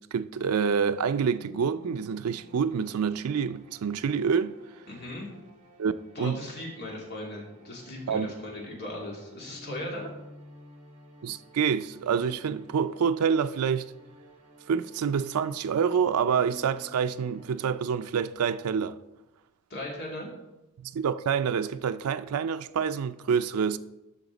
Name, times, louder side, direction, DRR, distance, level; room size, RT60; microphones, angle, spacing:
voice 1, 0.1-4.5 5.8-6.4 8.1-8.3 11.2-13.9 14.7-19.0 20.8-23.8, right 6 dB, 90° right, 0.4 m, -27 dB
sound 1, 1.4-18.1, equal, 35° right, 1.8 m, -53 dB
voice 2, 4.9-5.3 6.1-10.1 19.7-20.3, left 1 dB, 50° left, 2.6 m, -38 dB
12.5 x 5.9 x 4.0 m
head